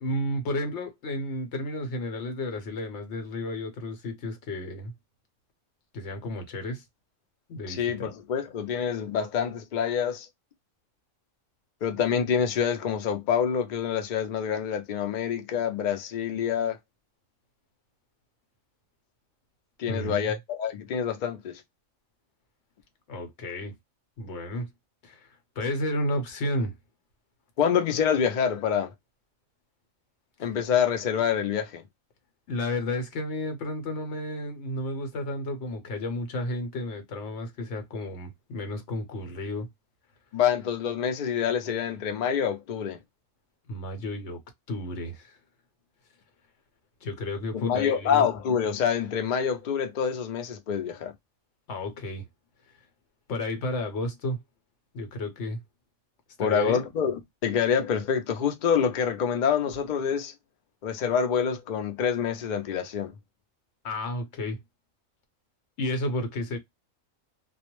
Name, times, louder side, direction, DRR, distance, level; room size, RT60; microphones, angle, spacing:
voice 1, 0.0-4.9 5.9-6.8 7.5-8.1 19.9-20.4 23.1-23.7 24.2-24.7 25.0-26.7 30.4-30.5 32.5-39.7 43.7-44.4 44.7-45.4 47.0-48.3 51.7-52.2 53.3-54.4 54.9-55.6 56.4-56.9 63.8-64.6 65.8-66.6, left 1 dB, 60° left, 0.9 m, -32 dB
voice 2, 7.7-10.3 11.8-16.8 19.8-21.6 27.6-28.9 30.4-31.8 40.3-43.0 47.5-51.1 56.4-60.3 60.8-63.1, left 7 dB, 80° left, 0.4 m, -26 dB
2.3 x 2.0 x 2.9 m
omnidirectional pair, 1.4 m